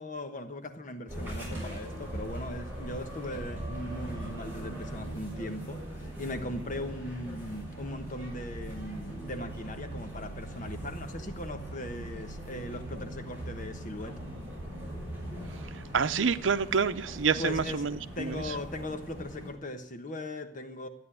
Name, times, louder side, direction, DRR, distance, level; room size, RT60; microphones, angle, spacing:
voice 1, 0.0-14.2 17.4-20.9, left 1 dB, 45° left, 1.3 m, -39 dB
sound 1, 1.1-19.5, right 1 dB, 10° right, 6.6 m, -40 dB
voice 2, 15.5-18.5, right 6 dB, 90° right, 0.7 m, -28 dB
13.0 x 9.5 x 9.8 m
head